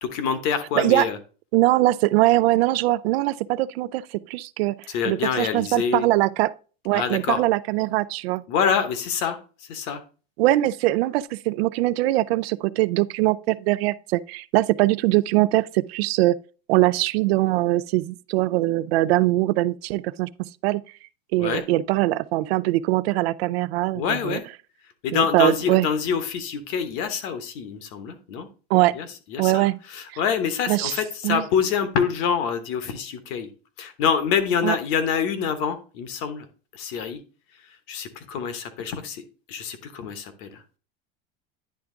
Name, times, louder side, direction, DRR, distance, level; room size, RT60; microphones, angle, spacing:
voice 1, 0.0-1.2 4.9-6.1 6.9-7.4 8.5-9.4 9.7-10.0 21.4-21.6 23.9-24.4 25.0-28.5 28.9-33.5 33.8-36.5 36.7-37.2 37.9-40.6, left 7 dB, 45° left, 1.0 m, -26 dB
voice 2, 0.8-1.1 1.5-4.7 5.1-6.5 6.8-8.4 10.4-16.4 16.7-20.8 21.3-24.4 25.1-25.9 28.7-28.9 29.4-29.8 30.7-31.0 31.2-31.4 34.6-34.8, right 17 dB, 90° right, 0.5 m, -22 dB
10.5 x 3.5 x 3.6 m
supercardioid pair, 170°, 30 cm